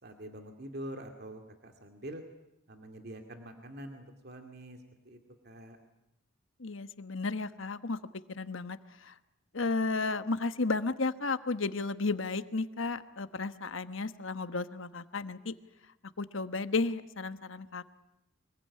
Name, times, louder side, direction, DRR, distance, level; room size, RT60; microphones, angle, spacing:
voice 1, 0.0-2.2 2.7-5.2 5.4-5.8, right 1 dB, 50° right, 5 dB, 2.4 m, -45 dB
voice 2, 6.6-8.0 8.3-9.1 9.5-15.5 16.2-17.8, left 3 dB, 70° left, 11 dB, 1.2 m, -33 dB
25.0 x 21.5 x 9.8 m, 0.84 s
head